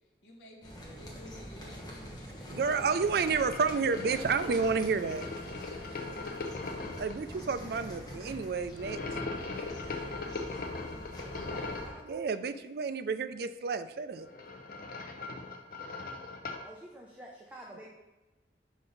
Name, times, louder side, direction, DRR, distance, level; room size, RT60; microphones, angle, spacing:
voice 1, 0.2-2.2 3.0-4.5 6.8-7.4, equal, 70° left, -2 dB, 1.0 m, -53 dB
sound 1, 0.6-11.9, equal, 20° left, 1.1 m, -45 dB
voice 2, 2.5-5.3 7.0-9.0 12.1-14.3, right 5 dB, 60° right, 11 dB, 0.4 m, -30 dB
sound 2, 2.6-7.1 8.8-12.0 14.1-16.7, left 3 dB, 50° left, 0.6 m, -40 dB
voice 3, 11.2-12.6 16.6-17.9, right 1 dB, 10° right, -2 dB, 0.6 m, -50 dB
5.6 x 5.3 x 3.9 m, 1.2 s
head